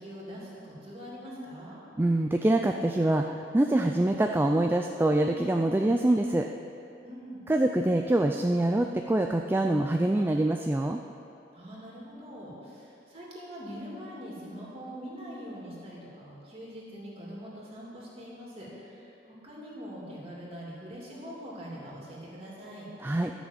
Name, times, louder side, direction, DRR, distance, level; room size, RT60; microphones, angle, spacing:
voice 1, 0.0-1.8 7.0-7.4 11.5-22.9, equal, 30° right, -5 dB, 2.8 m, -43 dB
voice 2, 2.0-6.5 7.5-11.0 23.0-23.3, right 1 dB, 10° right, 3 dB, 0.3 m, -25 dB
12.5 x 6.2 x 7.4 m, 2.8 s
head